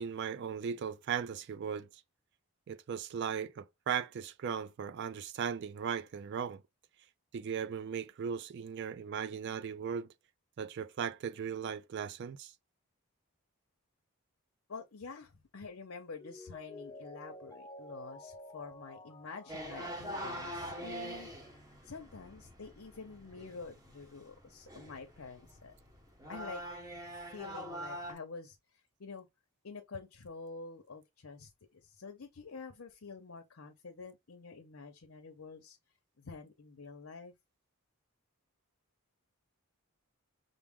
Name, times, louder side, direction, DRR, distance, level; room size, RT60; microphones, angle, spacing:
voice 1, 0.0-1.9 2.7-6.6 7.3-10.1 10.6-12.5, right 7 dB, 50° right, 0.3 m, -37 dB
voice 2, 14.7-25.7 26.3-26.6 27.3-29.3 29.6-35.8 36.2-37.3, left 4 dB, 65° left, 0.7 m, -48 dB
Mallet percussion, 16.2-21.7 22.1-22.2, left 1 dB, 15° left, 0.7 m, -52 dB
sound 1, 19.5-28.1, equal, 15° right, 1.0 m, -44 dB
5.9 x 2.0 x 3.6 m
head